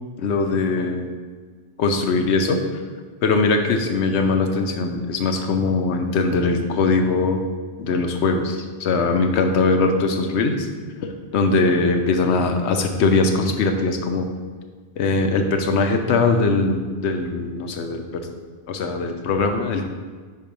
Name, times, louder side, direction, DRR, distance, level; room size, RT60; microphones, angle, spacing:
voice 1, 0.2-1.1 1.8-2.6 3.2-7.4 7.8-10.7 11.0-14.3 15.0-18.3 18.7-19.8, left 3 dB, 85° left, 5 dB, 1.0 m, -21 dB
5.5 x 4.4 x 5.2 m, 1.5 s
omnidirectional pair, 1.1 m